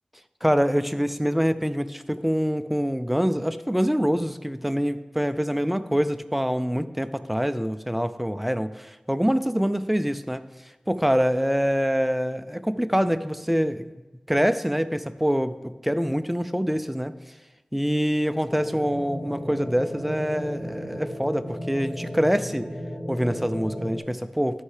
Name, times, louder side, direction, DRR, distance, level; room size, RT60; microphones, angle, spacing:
voice 1, 0.4-10.4 10.9-13.8 14.3-17.1 17.7-22.7 23.1-24.6, equal, 5° right, 12 dB, 0.4 m, -25 dB
sound 1, 18.5-24.0, equal, 20° left, 2.5 m, -35 dB
12.5 x 5.5 x 3.3 m, 1.1 s
cardioid pair, 40°, 2 cm